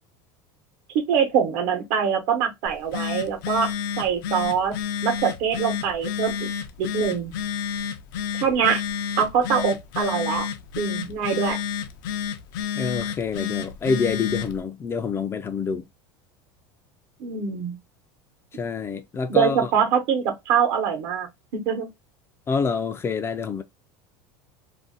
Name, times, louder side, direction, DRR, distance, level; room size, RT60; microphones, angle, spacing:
voice 1, 0.9-3.7 4.0-4.7 5.0-6.5 6.8-7.3 8.3-8.8 9.2-10.4 10.8-11.6 17.2-17.8 19.3-21.9, right 7 dB, 65° right, 1.0 m, -23 dB
Telephone, 2.7-14.6, left 8 dB, 75° left, 0.5 m, -30 dB
voice 2, 12.7-15.8 18.5-19.7 22.5-23.6, left 5 dB, 20° left, 0.3 m, -27 dB
2.5 x 2.1 x 3.7 m
supercardioid pair, 125°, 11 cm